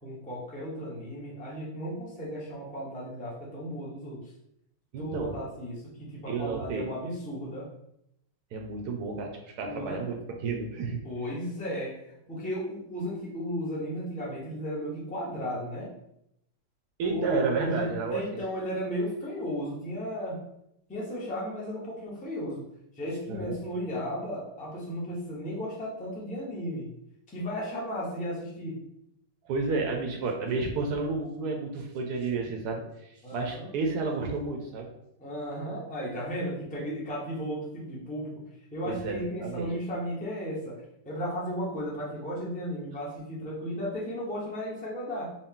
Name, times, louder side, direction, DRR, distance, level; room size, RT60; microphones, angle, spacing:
voice 1, 0.0-4.3 5.0-7.6 9.6-10.0 11.0-16.0 17.0-20.4 20.9-22.6 23.0-26.9 27.3-28.8 33.2-33.7 35.2-38.3 38.7-45.4, equal, 10° left, -5 dB, 0.4 m, -35 dB
voice 2, 4.9-5.4 6.3-6.9 8.5-11.0 17.0-18.4 23.3-23.6 29.5-34.9 38.8-39.7, right 4 dB, 70° right, 2 dB, 1.0 m, -31 dB
3.8 x 2.2 x 3.7 m, 0.78 s
omnidirectional pair, 1.9 m